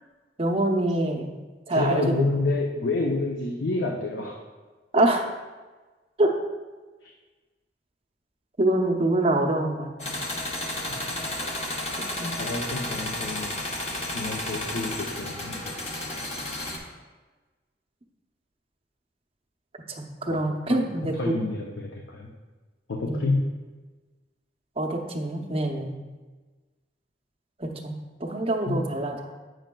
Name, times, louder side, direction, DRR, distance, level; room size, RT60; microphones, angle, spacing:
voice 1, 0.4-1.4 1.7-2.2 4.9-5.2 6.2-6.3 8.6-9.9 12.2-12.4 19.9-21.3 23.1-23.4 24.8-25.9 27.6-29.3, right 1 dB, 30° right, 1 dB, 0.7 m, -25 dB
voice 2, 1.7-4.4 7.0-7.1 10.9-11.1 12.4-13.6 14.1-15.8 20.3-20.4 20.7-22.3 22.9-23.4 28.7-28.8, left 3 dB, 85° left, 0 dB, 0.6 m, -29 dB
sound 1, 10.0-16.8, left 1 dB, 35° left, 0.9 m, -32 dB
8.8 x 6.2 x 2.2 m, 1.3 s
head